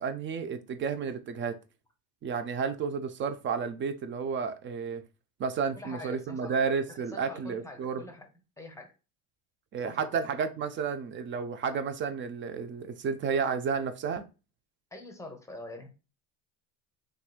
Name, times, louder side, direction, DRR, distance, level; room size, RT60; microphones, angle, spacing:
voice 1, 0.0-1.5 2.2-5.0 5.4-8.0 9.7-14.2, right 6 dB, 30° right, 0.3 m, -31 dB
voice 2, 5.8-6.6 6.9-8.3 8.6-8.9 9.8-10.2 14.9-15.9, left 2 dB, 5° left, 0.7 m, -45 dB
3.4 x 3.0 x 2.3 m
supercardioid pair, 90°, 45 cm